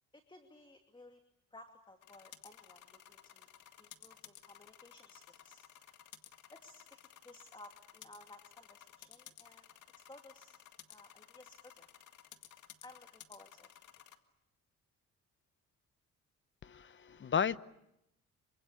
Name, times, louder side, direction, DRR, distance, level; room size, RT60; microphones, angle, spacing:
voice 1, 0.1-1.2 1.5-3.5 3.8-5.6 6.5-9.7 10.1-10.6 10.9-11.9 12.3-12.4 12.8-13.7, left 2 dB, 15° left, 6 dB, 2.6 m, -57 dB
sound 1, 2.0-14.2, left 10 dB, 75° left, 1.9 m, -57 dB
voice 2, 16.6-17.6, left 7 dB, 40° left, 16 dB, 1.0 m, -33 dB
28.0 x 25.0 x 8.4 m, 0.84 s
cardioid pair, 90°, 30 cm